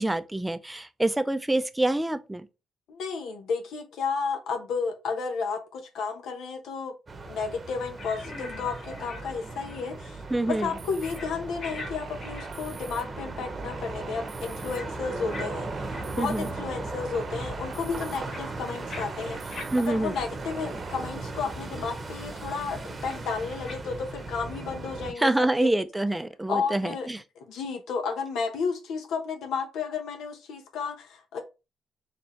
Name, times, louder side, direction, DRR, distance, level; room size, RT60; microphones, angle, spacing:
voice 1, 0.0-2.4 10.3-10.7 16.2-16.5 19.7-20.2 25.2-27.2, right 2 dB, 10° right, 0.5 m, -26 dB
voice 2, 2.9-6.9 7.3-10.2 10.5-25.7 26.5-27.1 27.4-31.4, left 5 dB, 80° left, 0.9 m, -32 dB
sound 1, 7.1-25.1, right 3 dB, 30° right, 0.9 m, -37 dB
sound 2, 8.0-9.9 10.2-10.4 11.0-11.3 11.6-11.9 12.2-13.1 13.4-13.6 14.7-14.9 15.3-15.5 15.9-16.0 16.5-16.6 17.2-17.3 17.7-19.7 20.1-20.2 20.7-20.8 21.3-21.4 23.1-23.2 23.7-23.8, left 2 dB, 55° left, 1.7 m, -42 dB
sound 3, 10.5-11.2 11.8-13.0 13.5-14.8 15.3-16.5 17.0-18.2 18.7-19.9 20.4-21.0, right 7 dB, 75° right, 0.9 m, -47 dB
4.3 x 3.3 x 3.2 m
cardioid pair, 90°, 0 cm